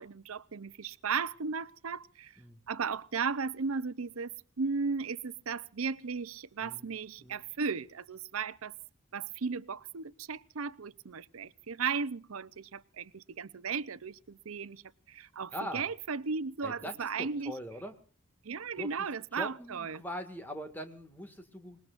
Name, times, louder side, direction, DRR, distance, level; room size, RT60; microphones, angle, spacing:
voice 1, 0.0-2.4 2.7-8.8 9.1-14.8 15.1-17.5 18.4-20.0, right 5 dB, 85° right, 0.7 m, -36 dB
voice 2, 6.6-6.9 7.2-7.4 15.5-15.8 16.6-17.9 18.8-18.9 19.3-21.8, equal, 10° left, 1.9 m, -42 dB
28.0 x 20.0 x 2.5 m
head